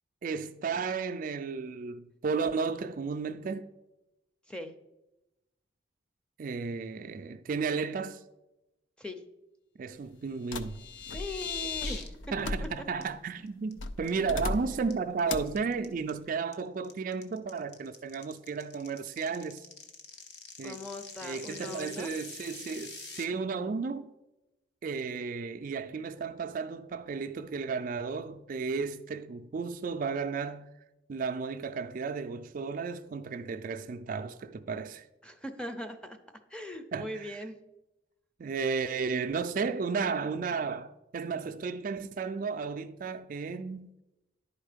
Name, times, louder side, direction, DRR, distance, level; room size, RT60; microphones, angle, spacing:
voice 1, 0.2-3.7 6.4-8.2 9.8-10.8 12.3-19.6 20.6-20.8 21.2-24.1 24.8-30.7 31.1-35.1 36.9-37.4 38.4-43.9, right 5 dB, 45° right, 0.3 m, -33 dB
sound 1, 10.4-12.1 12.4-12.7 13.0-13.1 13.5-13.7 14.1-14.5 14.9-23.2, left 7 dB, 60° left, 0.9 m, -43 dB
sound 2, 10.5-13.1 13.8-14.9 15.3-15.6, left 2 dB, 90° left, 0.5 m, -37 dB
voice 2, 11.1-12.1 12.4-12.5 20.6-22.1 35.2-36.2 36.5-37.6, left 1 dB, 5° left, 0.5 m, -40 dB
10.5 x 4.4 x 5.0 m
head